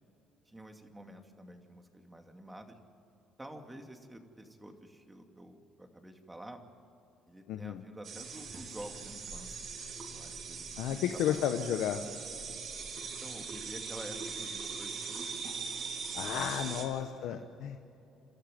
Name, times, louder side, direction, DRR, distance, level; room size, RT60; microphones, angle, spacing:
voice 1, 0.5-2.8 3.4-6.6 7.3-9.7 10.1-11.4 13.0-15.5 16.3-16.8 17.2-17.4, right 1 dB, 10° right, 4 dB, 2.5 m, -49 dB
voice 2, 7.5-7.8 10.8-12.0 16.1-17.9, left 10 dB, 75° left, 6 dB, 1.1 m, -33 dB
sound 1, 8.0-16.8, right 5 dB, 50° right, 4.3 m, -41 dB
29.5 x 13.5 x 9.3 m, 2.8 s
cardioid pair, 110°, 0 cm